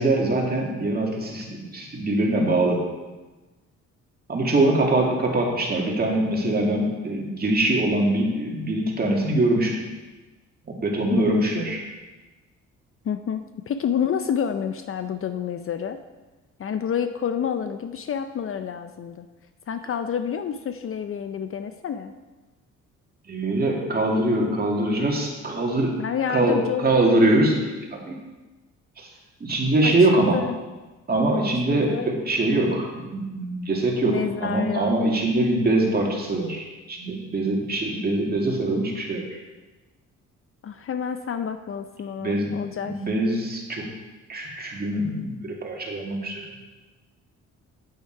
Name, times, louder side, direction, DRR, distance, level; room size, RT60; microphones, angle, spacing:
voice 1, 0.0-2.8 4.3-9.8 10.7-11.8 23.3-26.0 26.3-28.2 29.0-29.1 29.4-30.4 31.1-39.4 42.2-42.5 42.8-43.9 44.3-46.5, right 2 dB, 30° right, -1 dB, 2.3 m, -23 dB
voice 2, 13.0-16.0 16.6-19.3 19.7-22.1 26.0-27.0 29.8-30.5 31.7-32.1 34.0-35.0 40.6-43.0, left 8 dB, 45° left, 9 dB, 0.6 m, -29 dB
8.7 x 8.4 x 4.6 m, 1.2 s
cardioid pair, 90°, 30 cm